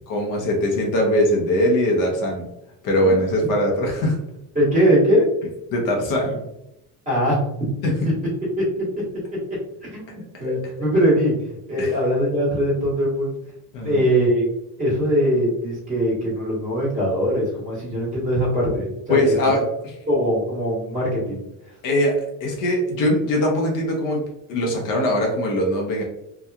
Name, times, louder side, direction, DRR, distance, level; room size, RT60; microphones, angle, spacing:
voice 1, 0.1-2.5 2.8-4.2 5.7-6.4 7.8-8.1 11.8-12.0 13.7-14.0 19.1-19.7 21.8-26.0, left 1 dB, 55° left, 0 dB, 0.7 m, -21 dB
voice 2, 4.5-5.2 7.0-7.4 9.8-10.0 10.4-13.3 13.8-14.4 14.8-19.6 20.1-21.4, equal, 20° right, -7 dB, 1.3 m, -21 dB
2.8 x 2.3 x 2.3 m, 0.85 s
cardioid pair, 155°, 38 cm